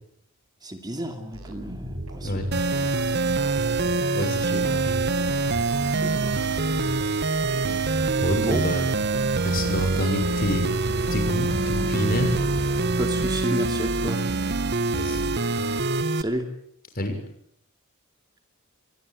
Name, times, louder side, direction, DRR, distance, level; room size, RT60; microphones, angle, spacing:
voice 1, 0.6-2.5 4.4-4.7 6.0-6.4 8.4-8.6 12.2-12.3 13.0-14.2 16.1-16.5, equal, 20° right, 5 dB, 2.6 m, -31 dB
sound 1, 1.3-13.5, right 1 dB, 85° right, 6.0 m, -37 dB
sound 2, 2.5-16.2, right 3 dB, 50° right, 1.2 m, -25 dB
voice 2, 4.1-4.9 8.2-8.8 9.4-10.7 11.1-12.3 14.9-15.3 16.9-17.2, left 1 dB, 45° left, 6 dB, 6.3 m, -27 dB
25.0 x 21.0 x 9.2 m, 0.69 s
head